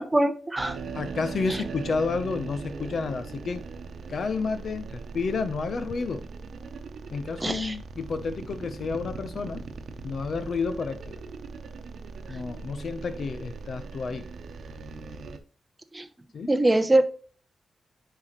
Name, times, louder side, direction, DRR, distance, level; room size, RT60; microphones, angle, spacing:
voice 1, 0.0-0.8 1.5-1.6 7.4-7.7 15.9-16.1 16.5-17.0, right 1 dB, 15° right, 0.8 m, -23 dB
sound 1, 0.6-15.4, right 4 dB, 75° right, 0.9 m, -39 dB
voice 2, 0.9-3.6 4.1-6.3 7.1-9.6 10.0-11.1 12.3-14.3 16.3-16.5, left 4 dB, 60° left, 0.8 m, -30 dB
9.7 x 4.8 x 3.2 m
wide cardioid pair, 115°, 0 cm